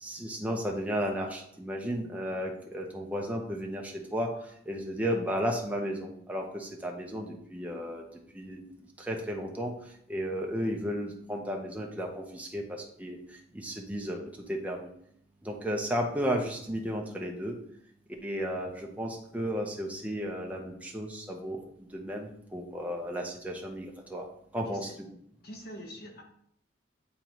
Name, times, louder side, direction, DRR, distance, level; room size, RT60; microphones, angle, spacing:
voice 1, 0.0-4.3 4.7-8.0 8.3-8.6 9.0-9.7 10.1-13.2 13.5-14.2 14.5-14.9 15.4-17.6 18.2-24.3 24.5-24.9, equal, 10° right, 0 dB, 0.8 m, -34 dB
voice 2, 25.4-26.2, equal, 50° left, 1 dB, 1.2 m, -44 dB
8.6 x 3.8 x 3.1 m, 0.68 s
head